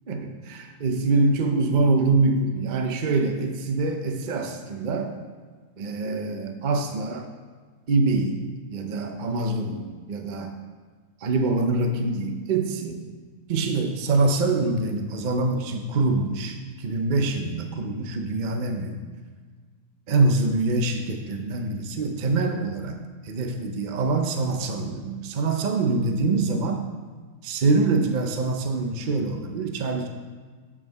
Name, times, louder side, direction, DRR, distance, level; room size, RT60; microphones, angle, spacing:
voice 1, 0.1-5.1 5.8-7.3 7.9-8.4 8.7-10.6 11.2-13.0 13.5-19.0 20.1-23.0 23.2-26.8 27.4-30.1, right 3 dB, 60° right, 5 dB, 0.5 m, -25 dB
8.5 x 4.8 x 5.3 m, 1.5 s
omnidirectional pair, 1.8 m